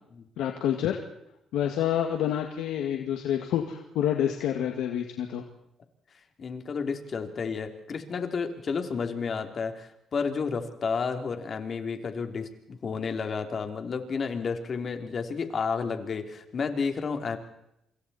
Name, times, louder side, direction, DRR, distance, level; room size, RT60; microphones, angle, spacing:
voice 1, 0.4-1.0 1.5-5.4, left 10 dB, 90° left, 3 dB, 1.9 m, -28 dB
voice 2, 6.4-17.4, left 5 dB, 50° left, 5 dB, 3.1 m, -31 dB
27.5 x 26.5 x 4.3 m, 0.82 s
cardioid pair, 90°, 0 cm